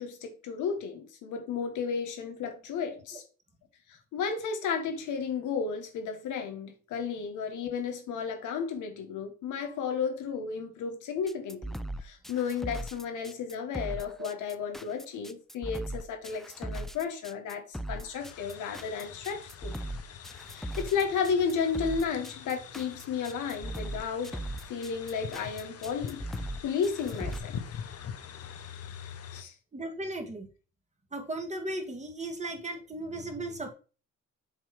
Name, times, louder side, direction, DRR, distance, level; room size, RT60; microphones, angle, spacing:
voice 1, 0.0-3.2 3.9-19.7 20.5-24.4 24.7-26.2 26.6-27.6 29.3-29.5, left 6 dB, 85° left, 1.5 m, -33 dB
sound 1, 11.3-27.4, right 1 dB, ahead, 0.4 m, -38 dB
sound 2, 18.2-29.4, left 8 dB, 50° left, 0.8 m, -44 dB
voice 2, 29.7-30.5 31.1-33.7, right 2 dB, 25° right, 1.7 m, -36 dB
7.4 x 3.0 x 4.8 m
cardioid pair, 90°, 30 cm